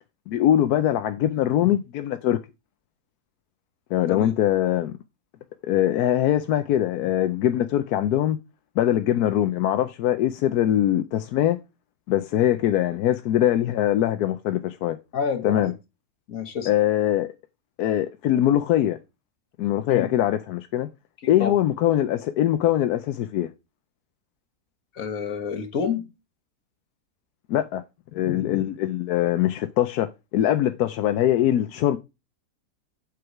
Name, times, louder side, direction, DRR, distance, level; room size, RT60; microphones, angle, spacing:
voice 1, 0.3-2.4 3.9-4.9 5.6-8.4 8.8-11.6 12.1-15.0 15.4-15.7 16.7-17.3 17.8-19.0 19.6-20.9 21.3-23.5 27.5-27.8 28.1-32.0, left 12 dB, 85° left, 1.2 m, -22 dB
voice 2, 15.1-15.7 16.3-16.7 19.9-20.1 21.4-21.6 24.9-26.1, left 6 dB, 65° left, 1.7 m, -28 dB
7.8 x 5.4 x 4.6 m
omnidirectional pair, 1.6 m